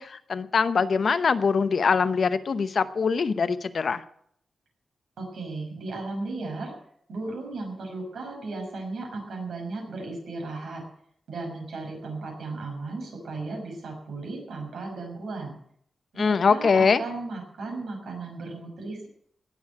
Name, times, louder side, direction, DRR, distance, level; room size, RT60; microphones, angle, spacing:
voice 1, 0.0-4.0 16.2-17.0, left 5 dB, 50° left, 12 dB, 0.9 m, -23 dB
voice 2, 5.2-6.7 7.1-10.8 11.3-15.6 16.1-19.1, right 3 dB, 80° right, 1 dB, 6.1 m, -35 dB
18.5 x 7.1 x 9.6 m, 0.67 s
wide cardioid pair, 160°, 0 cm